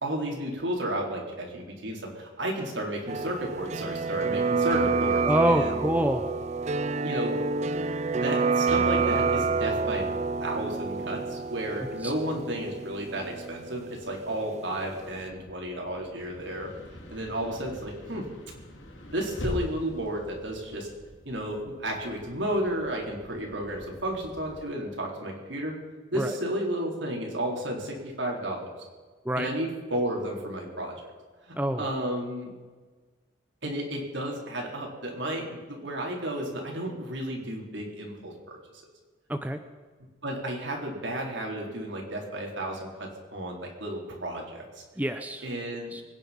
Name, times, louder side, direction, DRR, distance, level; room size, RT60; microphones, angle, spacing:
voice 1, 0.0-5.8 7.0-7.4 7.7-10.1 10.4-16.7 17.1-18.3 19.1-20.9 21.2-25.7 26.1-28.7 29.4-30.9 31.5-32.5 33.6-38.6 40.2-44.8 45.4-46.0, right 1 dB, 75° right, 0 dB, 4.3 m, -32 dB
sound 1, 3.1-14.8 15.0-15.1, right 4 dB, 35° right, 0.4 m, -28 dB
voice 2, 5.2-6.3 12.0-12.1 26.1-26.4 29.2-29.5 31.5-31.9 39.3-39.6 45.0-45.4 45.9-46.0, equal, 10° right, 7 dB, 0.8 m, -26 dB
sound 2, 15.0-24.6, equal, 85° left, 3.1 m, -43 dB
25.0 x 10.5 x 5.4 m, 1.4 s
head